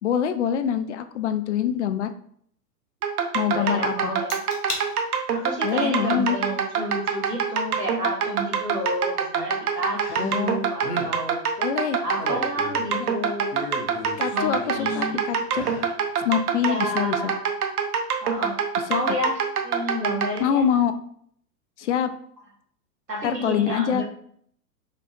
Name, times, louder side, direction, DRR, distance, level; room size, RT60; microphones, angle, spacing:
voice 1, 0.0-2.1 3.3-4.1 5.6-6.4 10.1-10.6 11.6-12.0 12.9-13.1 14.2-15.7 16.2-17.3 18.9-19.2 20.4-20.9 21.8-22.1 23.2-24.1, left 9 dB, 50° left, 10 dB, 0.5 m, -25 dB
sound 1, 3.0-20.4, right 6 dB, 65° right, 0.8 m, -25 dB
voice 2, 3.5-4.4 5.3-11.4 12.0-13.6 14.2-15.2 16.7-17.5 18.2-18.6 18.9-20.7 23.1-24.1, equal, 85° right, -2 dB, 1.8 m, -30 dB
sound 2, 4.3-4.9 5.3-5.7 7.3-7.4 10.0-10.5 10.8-11.1 11.9-13.0 13.5-15.0 15.5-16.0 16.4-16.5, left 2 dB, 70° left, 1.2 m, -35 dB
5.1 x 4.1 x 2.5 m, 0.63 s
figure-of-eight pair, 105°, 48 cm